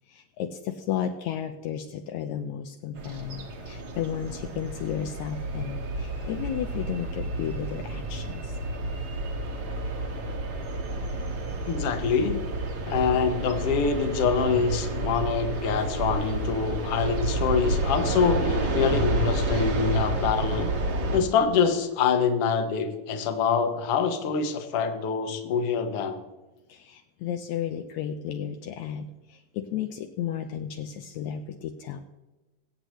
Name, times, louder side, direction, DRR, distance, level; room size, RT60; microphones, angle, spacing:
voice 1, 0.1-8.6 26.7-32.0, left 9 dB, 80° left, 6 dB, 1.9 m, -33 dB
sound 1, 3.0-21.2, right 1 dB, 50° right, 2.1 m, -30 dB
voice 2, 11.7-12.5 12.9-20.7 21.1-26.2, left 6 dB, 60° left, 7 dB, 1.9 m, -25 dB
24.0 x 8.1 x 3.2 m, 1.1 s
omnidirectional pair, 3.5 m